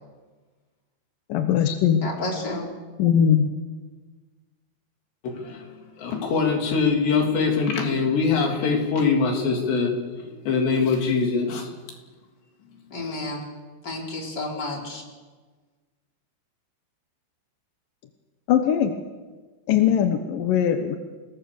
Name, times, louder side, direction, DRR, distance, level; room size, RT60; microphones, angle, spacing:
voice 1, 1.3-2.0 3.0-3.5 18.5-19.0 19.7-21.0, left 9 dB, 65° left, 6 dB, 2.4 m, -20 dB
voice 2, 2.0-2.7 12.9-13.4 13.8-15.0, left 2 dB, 25° left, -1 dB, 4.8 m, -31 dB
voice 3, 5.2-5.6 6.0-9.9 10.5-11.7, left 5 dB, 85° left, 1 dB, 5.4 m, -23 dB
29.5 x 19.5 x 7.0 m, 1.4 s
omnidirectional pair, 4.8 m